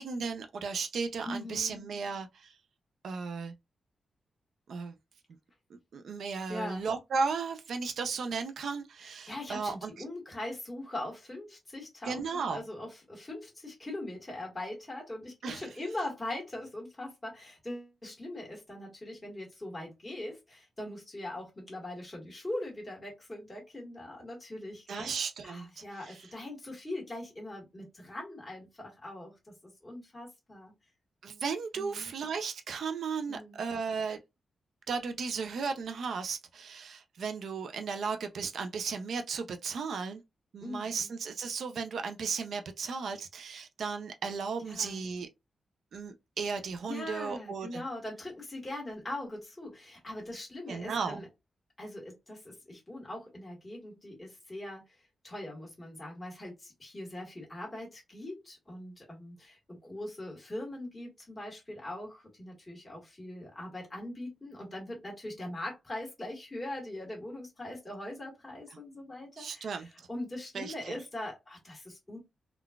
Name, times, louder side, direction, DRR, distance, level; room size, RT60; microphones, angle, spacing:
voice 1, 0.0-2.5 3.0-3.5 4.7-4.9 5.7-9.9 12.0-12.6 15.4-15.6 24.9-25.7 26.1-26.2 31.2-34.2 34.9-40.2 40.5-45.3 45.9-47.8 50.7-51.2 69.4-69.9 70.5-71.0, right 5 dB, 70° right, 0.4 m, -35 dB
voice 2, 1.2-1.8 6.5-6.8 9.0-25.2 25.4-30.7 31.7-32.1 33.3-33.6 40.6-41.1 44.6-45.0 46.8-51.3 51.8-72.2, left 1 dB, 20° left, 1.5 m, -41 dB
3.7 x 2.3 x 2.2 m
wide cardioid pair, 155°, 0 cm